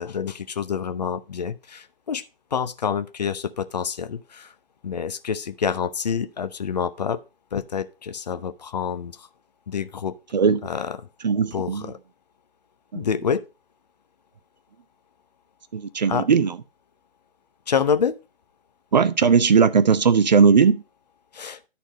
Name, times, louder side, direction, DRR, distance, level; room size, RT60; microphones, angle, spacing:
voice 1, 0.0-2.2 2.5-4.5 4.8-7.2 7.5-9.3 9.7-10.1 10.6-11.0 11.5-12.0 12.9-13.4 16.1-16.3 17.7-18.2 21.3-21.6, left 7 dB, 40° left, 0.7 m, -27 dB
voice 2, 11.2-11.9 12.9-13.0 15.7-16.6 18.9-20.8, right 5 dB, 45° right, 0.6 m, -18 dB
11.5 x 4.3 x 5.0 m
figure-of-eight pair, 135°, 31 cm